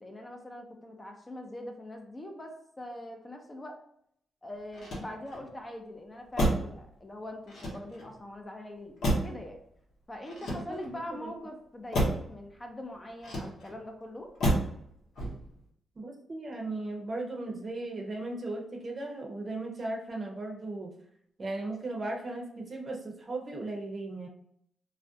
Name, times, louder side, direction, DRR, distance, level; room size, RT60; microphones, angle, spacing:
voice 1, 0.0-3.8 4.4-9.0 9.2-9.6 10.1-14.3, left 1 dB, 25° left, 3 dB, 0.4 m, -42 dB
Motor vehicle (road), 4.7-5.5 6.3-6.8 7.5-8.2 9.0-9.5 10.3-11.0 11.9-12.3 13.2-13.8 14.4-14.8 15.1-15.6, equal, 80° left, 0.8 m, -30 dB
voice 2, 16.0-20.9 21.4-24.3, right 2 dB, 40° right, 0 dB, 0.6 m, -37 dB
2.4 x 2.1 x 2.6 m, 0.69 s
cardioid pair, 80°, 0 cm